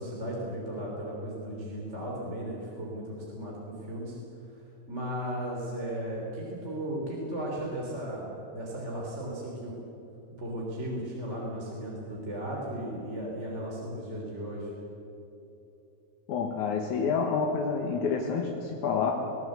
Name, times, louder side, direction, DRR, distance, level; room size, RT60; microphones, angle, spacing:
voice 1, 0.0-4.2 4.9-9.7 10.4-14.7, right 1 dB, 20° right, -3 dB, 3.1 m, -36 dB
voice 2, 16.3-19.1, left 5 dB, 60° left, 1 dB, 2.3 m, -28 dB
21.0 x 18.0 x 8.0 m, 3.0 s
omnidirectional pair, 4.6 m